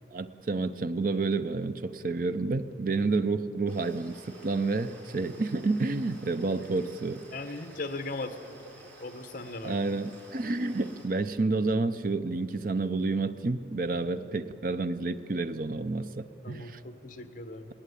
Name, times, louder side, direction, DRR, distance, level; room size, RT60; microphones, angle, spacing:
voice 1, 0.1-7.2 9.6-16.8, right 3 dB, 45° right, 0.6 m, -30 dB
sound 1, 3.7-11.1, right 2 dB, 75° right, 4.7 m, -53 dB
voice 2, 7.3-9.8 16.4-17.7, left 2 dB, 45° left, 1.3 m, -39 dB
20.5 x 18.5 x 8.3 m
head